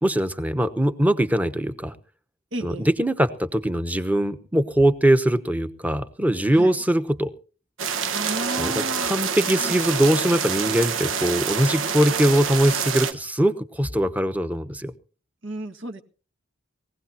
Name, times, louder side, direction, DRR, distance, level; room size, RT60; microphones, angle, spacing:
voice 1, 0.0-1.9 2.6-7.3 8.6-14.9, right 1 dB, 10° right, 11 dB, 1.0 m, -22 dB
voice 2, 2.5-2.9 6.5-6.8 8.1-9.2 9.6-9.8 15.4-16.0, right 1 dB, 65° right, 6 dB, 1.7 m, -33 dB
sound 1, 7.8-13.1, right 6 dB, 85° right, 1.3 m, -26 dB
21.5 x 16.5 x 2.8 m, 0.38 s
head